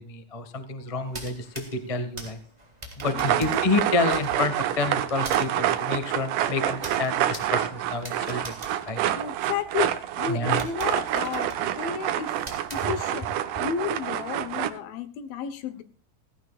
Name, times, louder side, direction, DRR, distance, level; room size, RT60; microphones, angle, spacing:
voice 1, 0.0-2.4 3.0-8.6 8.9-9.0 10.3-10.6, left 3 dB, 35° left, 8 dB, 0.5 m, -29 dB
sound 1, 1.0-9.8 10.2-10.3 10.6-13.4, right 1 dB, 10° right, 2.6 m, -44 dB
voice 2, 3.0-3.6 9.1-12.4 12.7-15.8, left 7 dB, 85° left, 12 dB, 3.1 m, -33 dB
sound 2, 3.0-14.7, right 11 dB, 70° right, 2.3 m, -27 dB
16.5 x 16.0 x 2.5 m, 0.41 s
omnidirectional pair, 4.1 m